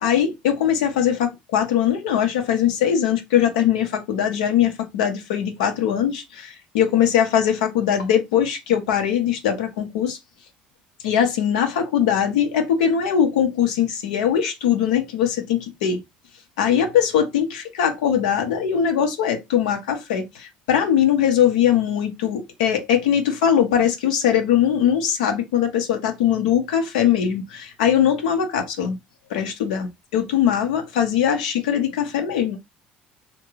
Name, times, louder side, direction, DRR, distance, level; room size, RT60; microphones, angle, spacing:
voice 1, 0.0-10.2 11.0-16.0 16.6-29.0 29.3-32.6, left 9 dB, 85° left, 0.6 m, -21 dB
2.4 x 2.1 x 3.0 m
hypercardioid pair, 75°, 4 cm